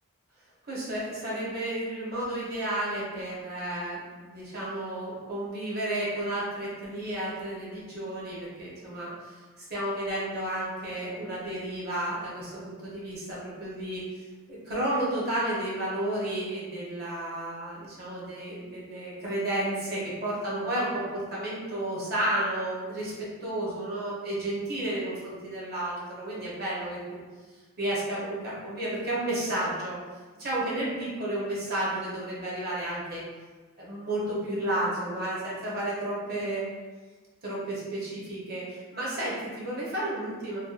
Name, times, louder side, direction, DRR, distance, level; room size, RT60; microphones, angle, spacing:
voice 1, 0.6-14.0 14.5-23.1 23.4-27.2 27.8-30.0 30.4-33.2 33.8-36.6 37.4-40.6, right 1 dB, 45° right, -6 dB, 0.8 m, -32 dB
2.5 x 2.2 x 2.4 m, 1.3 s
head